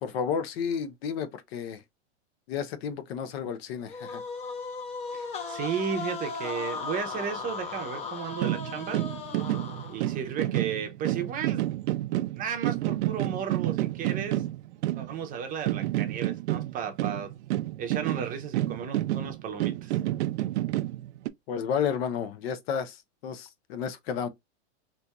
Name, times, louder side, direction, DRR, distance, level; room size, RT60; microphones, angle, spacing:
voice 1, 0.0-1.8 2.5-4.2 21.5-24.3, left 7 dB, 60° left, 0.7 m, -32 dB
sound 1, 3.9-10.2, left 4 dB, 20° left, 0.6 m, -37 dB
voice 2, 5.1-9.0 9.9-11.6 12.4-14.4 14.9-17.3 17.8-20.0, right 7 dB, 25° right, 0.7 m, -34 dB
sound 2, 8.3-15.4 15.7-21.3, right 15 dB, 75° right, 0.5 m, -29 dB
4.2 x 2.7 x 2.3 m
supercardioid pair, 145°, 35 cm